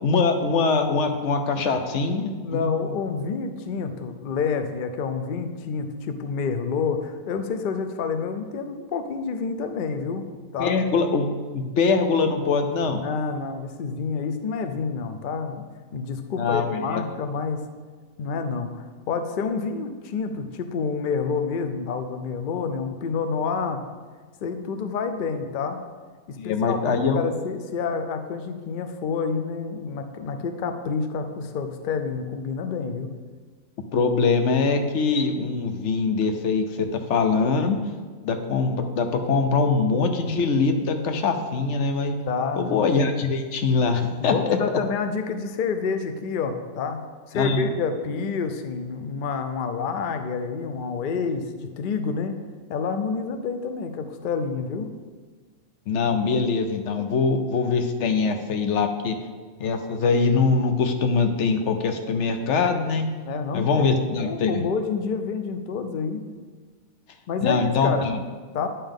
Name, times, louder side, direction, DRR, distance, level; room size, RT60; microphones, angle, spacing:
voice 1, 0.0-2.9 10.6-11.3 11.5-13.0 16.4-17.0 26.4-27.2 33.9-37.8 38.2-42.1 42.6-44.6 47.3-47.7 55.9-59.1 59.6-63.1 63.5-64.6 67.4-68.2, left 4 dB, 60° left, 6 dB, 0.9 m, -23 dB
voice 2, 2.4-10.3 10.5-10.8 12.8-15.6 15.9-17.6 18.2-23.8 24.4-25.8 26.3-33.1 42.3-42.8 44.2-47.0 47.3-52.4 52.7-54.9 63.2-66.2 67.3-68.1 68.5-68.7, left 5 dB, 85° left, 7 dB, 0.4 m, -28 dB
9.9 x 5.6 x 3.6 m, 1.5 s
omnidirectional pair, 1.6 m